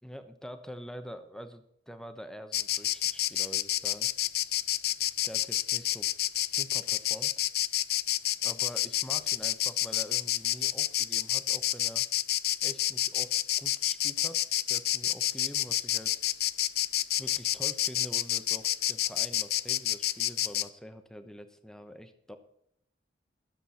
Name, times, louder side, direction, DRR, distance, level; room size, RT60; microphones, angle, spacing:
voice 1, 0.0-4.1 5.2-6.1 6.4-7.3 8.4-12.0 12.6-16.2 17.2-22.4, equal, 5° left, 8 dB, 0.9 m, -45 dB
Insect, 2.5-20.7, left 14 dB, 55° left, 0.4 m, -29 dB
13.0 x 7.6 x 5.6 m, 0.76 s
head